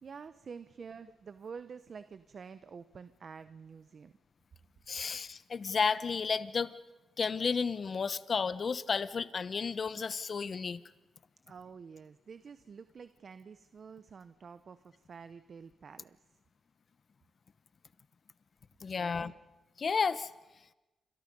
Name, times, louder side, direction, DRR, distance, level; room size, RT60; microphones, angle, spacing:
voice 1, 0.0-4.1 11.5-16.2 18.9-19.3, right 6 dB, 55° right, 12 dB, 0.8 m, -48 dB
voice 2, 4.9-6.7 7.2-10.8 18.8-19.3 19.8-20.3, left 5 dB, 50° left, 15 dB, 1.0 m, -32 dB
28.5 x 26.0 x 5.4 m, 1.1 s
cardioid pair, 80°, 0 cm